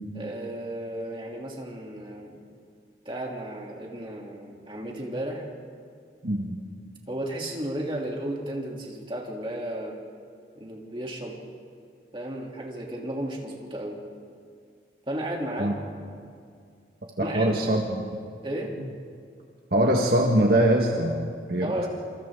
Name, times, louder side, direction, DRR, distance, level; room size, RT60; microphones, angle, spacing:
voice 1, 0.1-2.4 3.0-5.4 7.1-9.9 10.5-11.4 12.1-14.0 15.1-15.7 17.2-17.7 18.4-18.7 21.6-21.9, right 1 dB, 30° right, -1 dB, 3.1 m, -33 dB
voice 2, 6.2-6.6 15.6-15.7 17.2-18.0 19.7-21.9, right 1 dB, 55° right, 0 dB, 1.6 m, -23 dB
27.5 x 26.0 x 3.9 m, 2.2 s
head